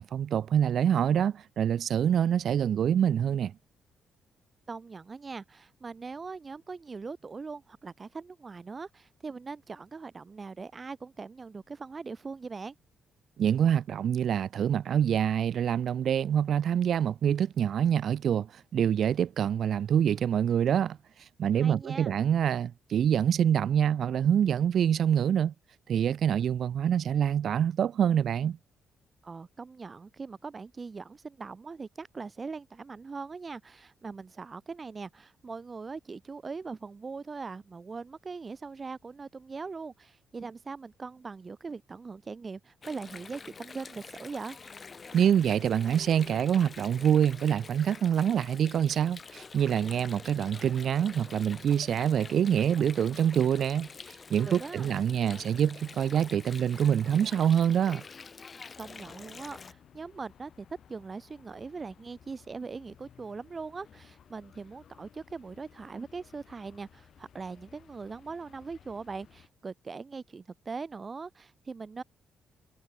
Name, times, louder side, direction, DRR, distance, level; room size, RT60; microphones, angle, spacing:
voice 1, 0.0-3.5 13.4-21.0 21.4-25.5 25.9-28.6 45.1-53.9 54.3-58.0, right 9 dB, 60° right, 0.3 m, -26 dB
voice 2, 4.7-12.7 21.5-22.1 29.2-44.6 54.5-54.9 58.8-72.0, right 4 dB, 30° right, 1.3 m, -41 dB
Water, 42.8-59.7, left 5 dB, 35° left, 1.6 m, -47 dB
Thunder / Rain, 46.8-59.6, left 12 dB, 75° left, 5.4 m, -67 dB
sound 1, 58.7-69.5, left 8 dB, 60° left, 2.1 m, -58 dB
cardioid pair, 90°, 0 cm